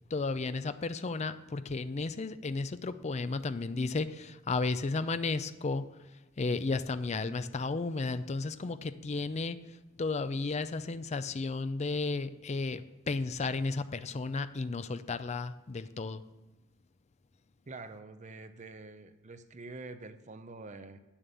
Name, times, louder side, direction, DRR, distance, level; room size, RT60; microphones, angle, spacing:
voice 1, 0.1-5.8 6.4-16.2, left 3 dB, 30° left, 12 dB, 0.4 m, -33 dB
voice 2, 17.7-21.0, right 3 dB, 35° right, 10 dB, 0.6 m, -46 dB
8.7 x 7.2 x 6.8 m, 1.1 s
head